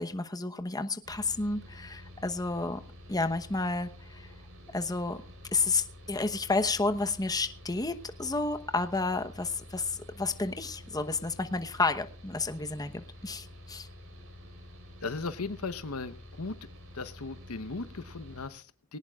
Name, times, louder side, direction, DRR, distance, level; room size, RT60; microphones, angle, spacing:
voice 1, 0.0-2.8 3.1-4.3 4.7-5.2 5.5-7.9 8.2-13.9, left 3 dB, 15° left, 8 dB, 1.0 m, -31 dB
Mechanical fan, 1.0-18.5, left 1 dB, 65° right, 4.9 m, -49 dB
voice 2, 15.0-16.7 16.9-19.0, left 3 dB, 75° left, 13 dB, 1.0 m, -37 dB
20.0 x 18.5 x 2.4 m, 0.40 s
head